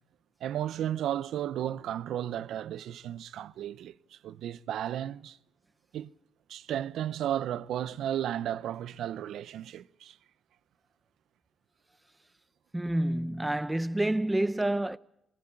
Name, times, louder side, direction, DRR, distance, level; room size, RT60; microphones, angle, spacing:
voice 1, 0.4-5.4 5.9-6.1 6.5-10.2, right 11 dB, 75° right, 0.7 m, -34 dB
voice 2, 12.7-15.0, right 1 dB, 10° right, 0.7 m, -28 dB
19.5 x 18.0 x 8.8 m
cardioid pair, 90°, 0 cm